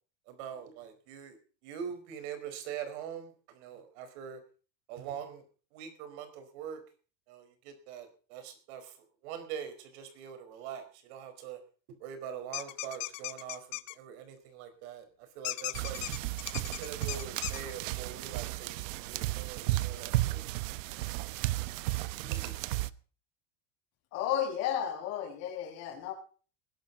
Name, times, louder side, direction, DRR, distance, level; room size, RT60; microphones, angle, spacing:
voice 1, 0.3-1.4 1.6-4.4 4.9-5.4 5.7-6.8 7.3-9.0 9.2-11.6 12.0-15.0 15.3-16.0 16.7-20.4 22.2-22.5, right 8 dB, 60° right, 9 dB, 4.7 m, -43 dB
sound 1, 12.5-13.9 15.4-17.6, left 20 dB, 75° left, 1.2 m, -37 dB
sound 2, 15.7-22.9, right 17 dB, 85° right, 1.0 m, -34 dB
voice 2, 24.1-26.1, left 10 dB, 40° left, 1 dB, 6.7 m, -33 dB
20.0 x 12.0 x 4.0 m, 0.38 s
cardioid pair, 175°, 38 cm